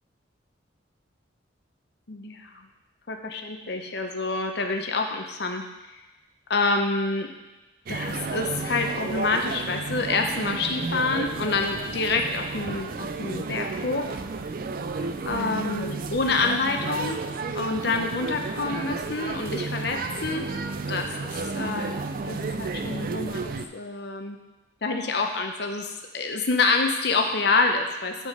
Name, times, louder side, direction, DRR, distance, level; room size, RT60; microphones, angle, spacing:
voice 1, 2.1-2.7 3.1-5.6 6.5-7.3 7.9-14.2 15.3-17.2 17.5-20.5 20.9-24.4 24.8-28.3, left 3 dB, 55° left, 4 dB, 0.7 m, -27 dB
sound 1, 7.9-23.7, right 4 dB, 45° right, 0.3 m, -32 dB
8.4 x 4.2 x 4.8 m, 1.1 s
head